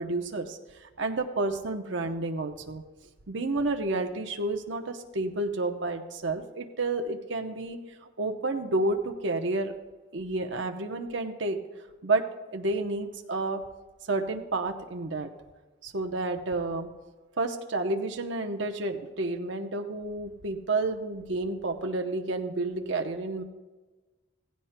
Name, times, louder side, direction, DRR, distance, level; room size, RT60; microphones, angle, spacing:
voice 1, 0.0-2.8 3.3-7.8 8.2-9.7 10.1-11.6 12.0-12.2 12.5-13.6 14.1-15.3 15.8-16.9 17.4-23.4, right 2 dB, 70° right, 4 dB, 0.8 m, -30 dB
16.5 x 15.5 x 2.2 m, 1.2 s
head